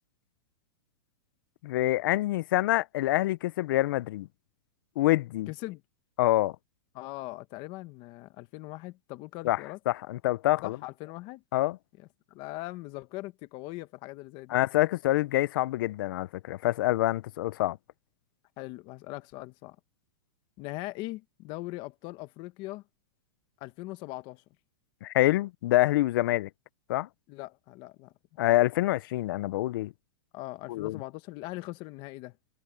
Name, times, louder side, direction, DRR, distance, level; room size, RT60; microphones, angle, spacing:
voice 1, 1.6-4.3 5.0-5.5 6.2-6.5 9.4-9.6 9.9-10.8 11.5-11.8 14.5-17.8 25.0-26.5 26.9-27.1 28.4-29.9 30.7-31.0, left 16 dB, 60° left, 0.5 m, -26 dB
voice 2, 5.5-5.8 6.9-9.8 10.6-11.4 12.0-14.6 18.6-19.8 20.6-22.8 23.6-24.4 27.3-28.1 30.3-32.4, left 20 dB, 35° left, 1.1 m, -40 dB
supercardioid pair, 155°, 13 cm